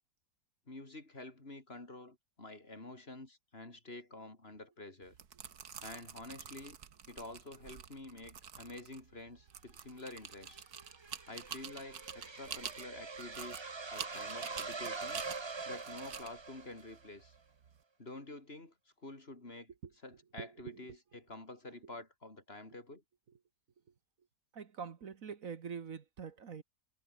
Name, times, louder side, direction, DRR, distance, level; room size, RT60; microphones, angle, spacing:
voice 1, 0.7-5.2 5.8-6.8 7.1-10.6 11.3-15.2 15.7-17.4 18.0-18.7 19.0-19.7 20.0-23.0, left 2 dB, 40° left, 3.9 m, -49 dB
sound 1, 5.0-17.8, right 8 dB, 80° right, 1.9 m, -48 dB
sound 2, 10.0-17.1, right 4 dB, 25° right, 0.7 m, -44 dB
voice 2, 20.4-20.9 21.8-21.9 24.5-26.6, right 6 dB, 60° right, 1.8 m, -45 dB
omnidirectional pair, 1.6 m